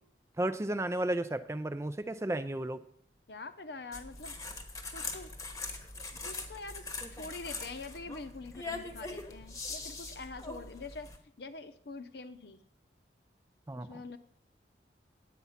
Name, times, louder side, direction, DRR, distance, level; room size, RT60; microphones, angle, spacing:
voice 1, 0.4-2.8 13.7-13.9, right 1 dB, 15° right, 13 dB, 0.4 m, -33 dB
voice 2, 3.3-4.3 4.9-5.3 6.2-6.8 7.1-11.1 11.4-12.6 13.8-14.2, left 3 dB, 65° left, 11 dB, 0.8 m, -44 dB
sound 1, 3.9-11.2, left 3 dB, 15° left, 1.0 m, -42 dB
9.3 x 8.3 x 5.7 m, 0.67 s
head